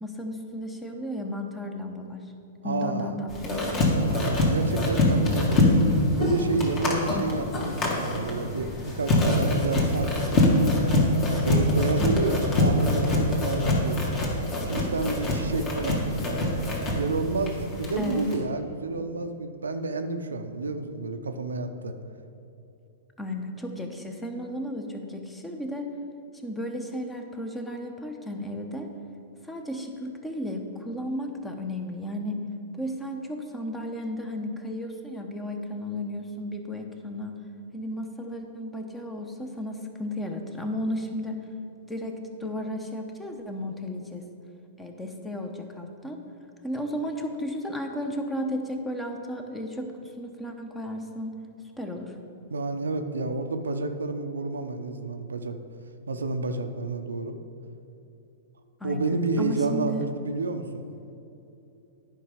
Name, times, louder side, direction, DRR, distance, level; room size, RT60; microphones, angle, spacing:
voice 1, 0.0-2.2 2.6-3.8 12.0-12.4 18.0-18.2 23.2-25.9 26.4-28.9 29.4-32.5 32.8-37.4 37.7-41.4 41.9-44.2 44.8-46.2 46.6-51.4 51.8-52.2 58.8-60.0, left 1 dB, 10° left, 4 dB, 0.9 m, -34 dB
voice 2, 2.6-3.2 4.0-5.7 6.2-10.6 11.3-14.0 14.7-16.6 16.9-22.0 52.5-55.6 56.1-57.4 58.8-60.8, right 3 dB, 90° right, 7 dB, 0.6 m, -30 dB
sound 1, 3.3-18.4, left 1 dB, 30° left, 2.0 m, -24 dB
10.0 x 5.4 x 5.0 m, 2.8 s
hypercardioid pair, 115°, 0 cm